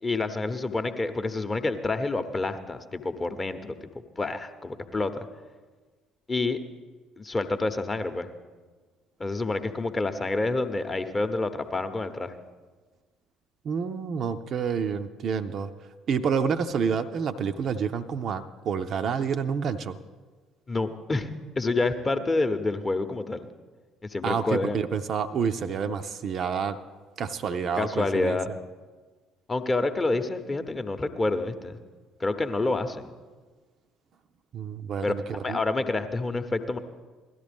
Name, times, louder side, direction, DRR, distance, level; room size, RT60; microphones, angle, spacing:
voice 1, 0.0-5.1 6.3-6.6 7.2-8.3 9.2-12.3 20.7-21.3 21.6-23.5 24.1-24.8 27.8-28.5 29.5-31.8 32.2-33.1 35.0-35.1 35.4-36.8, left 2 dB, 25° left, 8 dB, 0.8 m, -28 dB
voice 2, 13.6-15.7 16.1-20.0 24.2-26.8 27.2-28.4 34.5-35.2 35.5-35.6, right 6 dB, 45° right, 8 dB, 0.5 m, -28 dB
17.0 x 12.5 x 3.5 m, 1.4 s
figure-of-eight pair, 50°, 0 cm